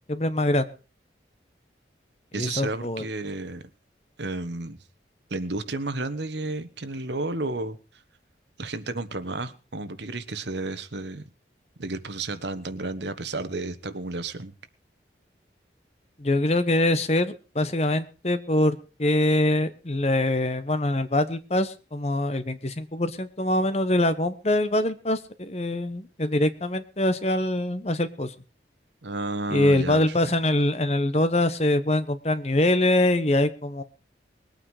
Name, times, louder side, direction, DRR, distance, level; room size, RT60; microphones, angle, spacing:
voice 1, 0.1-0.7 2.4-3.0 16.2-28.3 29.5-33.8, left 1 dB, 35° left, 11 dB, 1.1 m, -24 dB
voice 2, 2.3-3.6 4.2-4.8 5.3-7.8 8.6-11.3 11.8-14.5 29.0-30.3, right 2 dB, 75° right, 11 dB, 1.3 m, -32 dB
21.0 x 9.0 x 4.9 m, 0.34 s
head